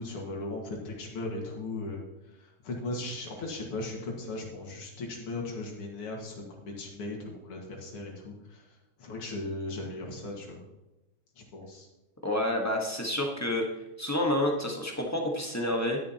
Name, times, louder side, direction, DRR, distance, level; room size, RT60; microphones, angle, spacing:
voice 1, 0.0-2.0 2.3-10.7 11.4-11.9, left 2 dB, 85° left, 0 dB, 2.7 m, -38 dB
voice 2, 12.2-13.6 14.0-16.0, left 1 dB, 10° left, 0 dB, 0.9 m, -29 dB
11.0 x 10.5 x 2.9 m, 1.0 s
omnidirectional pair, 2.4 m